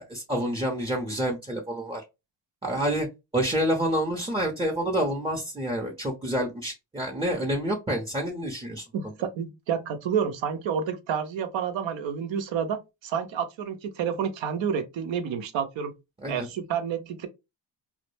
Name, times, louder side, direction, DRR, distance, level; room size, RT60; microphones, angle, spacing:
voice 1, 0.0-2.0 2.6-3.1 3.3-8.8 16.2-16.5, equal, 10° right, 0.6 m, -28 dB
voice 2, 8.9-15.9 16.3-17.3, right 7 dB, 75° right, 0.7 m, -29 dB
2.1 x 2.0 x 3.1 m
cardioid pair, 70°, 46 cm